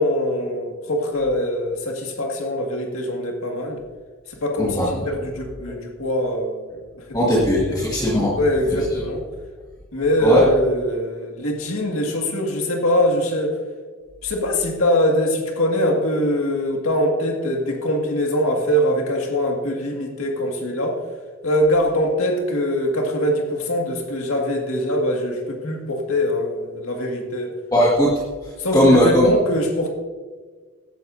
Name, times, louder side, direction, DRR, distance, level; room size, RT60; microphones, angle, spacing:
voice 1, 0.0-3.8 4.3-7.2 7.5-7.9 8.4-9.2 9.9-13.6 14.2-21.0 21.4-27.6 28.6-29.9, left 1 dB, 80° left, 1 dB, 2.0 m, -23 dB
voice 2, 7.1-8.3 10.2-10.4 27.7-28.1 28.7-29.3, equal, 15° left, -5 dB, 1.8 m, -17 dB
16.0 x 11.0 x 2.7 m, 1.5 s
head